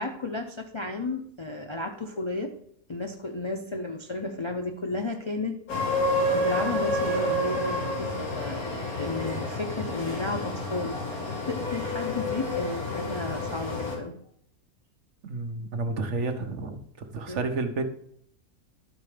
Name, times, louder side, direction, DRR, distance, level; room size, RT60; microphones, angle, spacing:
voice 1, 0.0-2.6 2.9-5.6 6.3-8.6 9.0-11.2 11.5-14.1 17.3-17.4, left 2 dB, 50° left, 2 dB, 0.3 m, -33 dB
sound 1, 5.7-14.0, left 1 dB, 75° left, 2.9 m, -29 dB
voice 2, 15.2-17.8, right 3 dB, 55° right, 7 dB, 1.2 m, -31 dB
12.0 x 4.3 x 5.0 m, 0.68 s
omnidirectional pair, 1.6 m